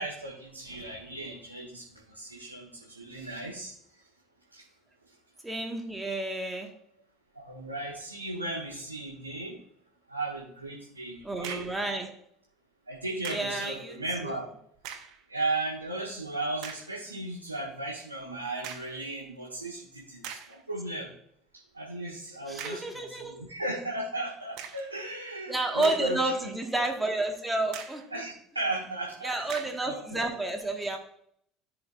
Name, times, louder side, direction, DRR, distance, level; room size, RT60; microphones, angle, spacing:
voice 1, 0.0-4.0 4.5-4.6 7.3-9.6 10.1-11.6 12.9-14.4 15.3-21.1 21.7-26.3 28.1-29.4 29.8-30.3, right 2 dB, 90° right, -4 dB, 1.5 m, -36 dB
voice 2, 5.4-6.7 11.2-12.1 13.3-14.0 14.2-14.3 22.5-23.4 25.5-28.0 29.2-31.0, right 2 dB, 10° right, 3 dB, 1.6 m, -30 dB
sound 1, 11.2-11.8 13.2-13.6 14.7-15.2 15.8-15.9 16.6-16.9 18.6-19.0 19.7-19.8 20.2-20.6 22.6-23.0 24.6-24.9 25.6-26.4 26.8-26.9 27.7-28.1 29.5-29.9, right 8 dB, 55° right, 1.1 m, -42 dB
14.0 x 4.9 x 2.5 m, 0.69 s
figure-of-eight pair, 65°, 0 cm